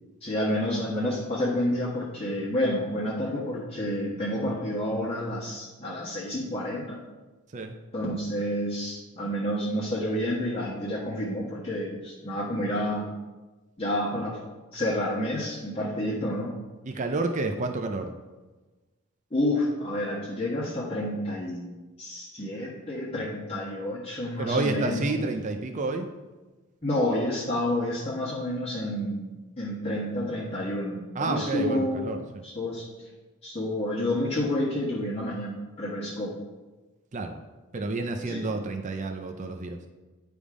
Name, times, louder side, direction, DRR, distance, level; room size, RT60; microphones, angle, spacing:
voice 1, 0.2-7.0 7.9-13.1 13.8-14.4 14.7-16.5 19.3-25.2 26.8-29.3 29.6-32.1 32.4-33.1 33.4-36.3 38.3-38.5, left 1 dB, 25° left, -6 dB, 1.2 m, -29 dB
voice 2, 16.8-18.1 24.4-26.1 31.1-32.2 37.1-37.4 37.7-39.8, right 3 dB, 35° right, 4 dB, 0.5 m, -29 dB
10.0 x 3.5 x 4.9 m, 1.2 s
head